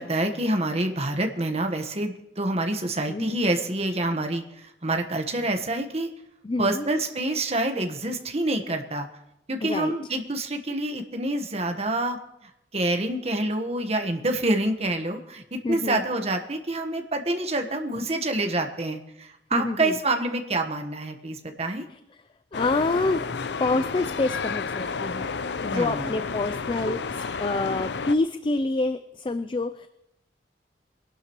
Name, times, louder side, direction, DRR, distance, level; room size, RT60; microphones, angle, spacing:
voice 1, 0.0-6.1 6.6-9.1 9.5-12.2 12.7-21.8 25.7-26.1, right 2 dB, 35° right, 5 dB, 1.3 m, -27 dB
voice 2, 3.1-3.5 6.4-6.9 9.6-9.9 15.6-16.0 19.5-20.0 21.9-22.0 22.5-23.2 23.6-25.3 25.6-29.9, left 3 dB, 30° left, 10 dB, 0.4 m, -27 dB
sound 1, 22.5-28.1, left 5 dB, 75° left, 0.6 m, -31 dB
23.0 x 11.5 x 3.1 m, 0.85 s
head